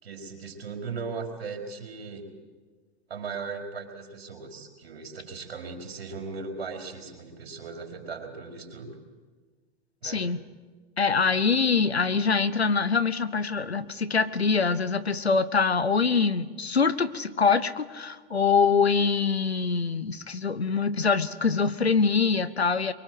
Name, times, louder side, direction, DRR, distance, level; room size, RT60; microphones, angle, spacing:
voice 1, 0.0-2.3 3.1-8.9 10.0-10.2, right 4 dB, 70° right, 3 dB, 4.9 m, -38 dB
voice 2, 10.0-10.4 11.0-22.9, left 5 dB, 90° left, 14 dB, 1.2 m, -24 dB
24.0 x 23.0 x 8.0 m, 1.4 s
figure-of-eight pair, 95°, 31 cm